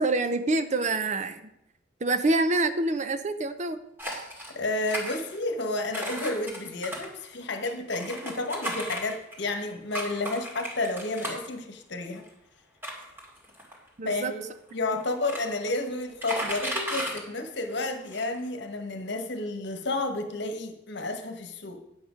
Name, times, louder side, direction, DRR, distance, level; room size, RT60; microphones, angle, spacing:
voice 1, 0.0-1.4 2.0-3.8 14.0-14.3, right 2 dB, 35° right, 10 dB, 0.6 m, -26 dB
sound 1, 4.0-4.5 4.8-5.6 5.9-9.4 9.9-11.5 12.2-12.3 12.8-13.9 14.7-14.8 15.0-15.7 16.0-17.2 17.7-17.8 18.1-18.4, equal, 10° right, 2.1 m, -35 dB
voice 2, 4.5-12.3 14.0-21.8, left 2 dB, 60° left, 6 dB, 1.2 m, -31 dB
9.6 x 7.7 x 5.1 m, 0.81 s
head